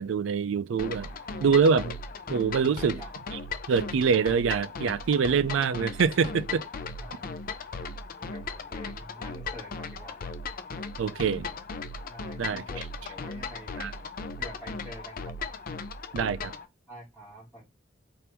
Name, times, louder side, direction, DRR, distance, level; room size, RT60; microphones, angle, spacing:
voice 1, 0.0-1.1 1.4-2.0 2.3-3.0 3.3-3.4 3.7-6.7 11.0-11.5 12.4-12.6 13.8-13.9 16.1-16.5, right 6 dB, 80° right, 0.4 m, -25 dB
sound 1, 0.8-16.7, left 4 dB, 50° left, 0.5 m, -37 dB
voice 2, 1.0-1.6 2.6-3.1 6.9-7.3 8.2-10.3 12.1-12.8 13.1-13.9 14.4-15.3 16.9-17.7, equal, 5° right, 2.5 m, -47 dB
4.4 x 2.6 x 3.4 m
head